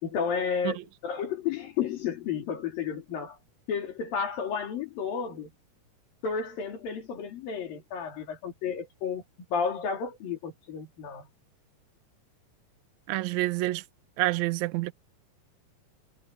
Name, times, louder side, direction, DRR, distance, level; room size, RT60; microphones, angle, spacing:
voice 1, 0.0-3.4 3.7-5.5 6.2-9.2 9.5-11.3, left 6 dB, 90° left, 4.8 m, -32 dB
voice 2, 13.1-13.8 14.2-14.9, right 17 dB, 75° right, 1.8 m, -27 dB
omnidirectional pair, 3.9 m